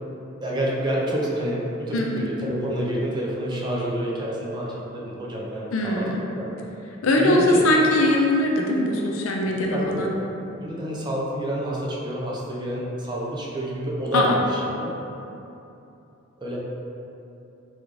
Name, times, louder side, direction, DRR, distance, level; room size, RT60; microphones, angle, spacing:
voice 1, 0.4-6.5 7.2-7.7 9.5-10.1 10.6-15.0 16.4-16.6, right 1 dB, 20° right, -5 dB, 0.5 m, -28 dB
voice 2, 1.9-2.3 5.7-6.2 7.0-10.1 14.1-14.4, left 1 dB, 70° left, -1 dB, 0.4 m, -21 dB
3.7 x 2.3 x 3.1 m, 2.9 s
head